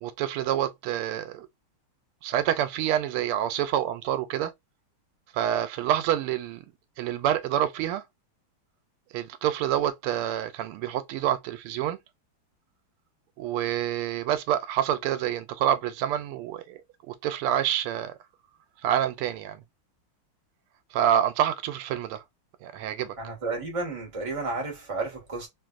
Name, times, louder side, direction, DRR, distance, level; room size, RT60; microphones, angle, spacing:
voice 1, 0.0-1.5 2.2-4.5 5.3-6.6 7.0-8.0 9.1-12.0 13.4-16.8 17.1-18.2 18.8-19.6 20.9-22.2 22.6-23.2, right 11 dB, 90° right, 1.5 m, -27 dB
voice 2, 23.2-25.5, right 3 dB, 20° right, 1.1 m, -32 dB
3.4 x 2.6 x 2.4 m
omnidirectional pair, 2.4 m